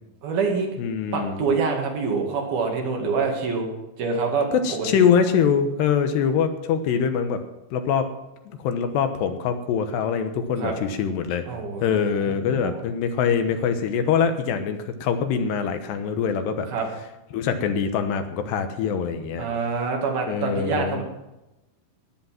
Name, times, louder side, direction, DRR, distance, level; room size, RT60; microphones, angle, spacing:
voice 1, 0.2-0.7 1.1-3.7 4.0-5.1 10.6-10.7 11.5-12.8 16.7-16.9 19.4-21.0, right 4 dB, 60° right, 1 dB, 3.7 m, -26 dB
voice 2, 0.8-1.4 4.6-7.4 7.7-8.1 8.5-11.4 11.8-16.7 17.3-19.4 20.3-21.0, left 7 dB, 75° left, 8 dB, 3.1 m, -24 dB
16.0 x 10.5 x 5.9 m, 0.97 s
omnidirectional pair, 5.1 m